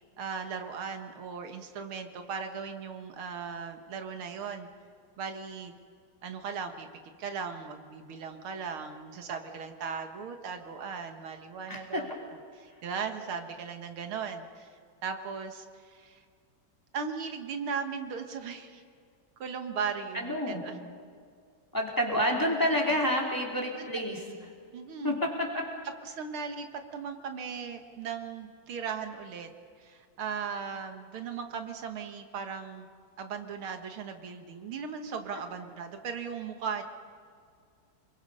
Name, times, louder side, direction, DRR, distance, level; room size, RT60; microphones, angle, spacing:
voice 1, 0.2-4.7 5.2-5.7 6.2-6.9 7.2-14.7 15.0-16.2 16.9-18.8 19.4-20.8 22.9-23.0 23.7-23.9 24.7-25.2 26.0-29.5 29.8-32.9 33.2-36.8, right 6 dB, 80° right, 6 dB, 2.2 m, -37 dB
voice 2, 11.7-12.0 20.2-20.6 21.7-24.2 25.0-25.6, equal, 10° left, -1 dB, 3.1 m, -28 dB
28.5 x 21.5 x 5.5 m, 2.1 s
omnidirectional pair, 2.3 m